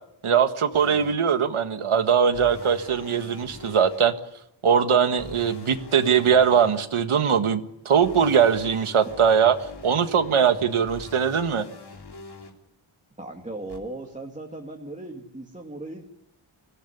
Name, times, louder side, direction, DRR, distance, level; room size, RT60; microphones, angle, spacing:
voice 1, 0.2-4.1 4.6-9.5 9.8-11.6, right 7 dB, 85° right, 10 dB, 1.7 m, -21 dB
sound 1, 0.7-1.1 2.3-4.0 5.2-6.8 8.0-12.5 13.7-13.8, left 3 dB, 55° left, 3.4 m, -43 dB
voice 2, 13.2-16.1, right 2 dB, 15° right, 0 dB, 2.3 m, -37 dB
24.5 x 16.5 x 9.9 m, 0.82 s
wide cardioid pair, 135°, 48 cm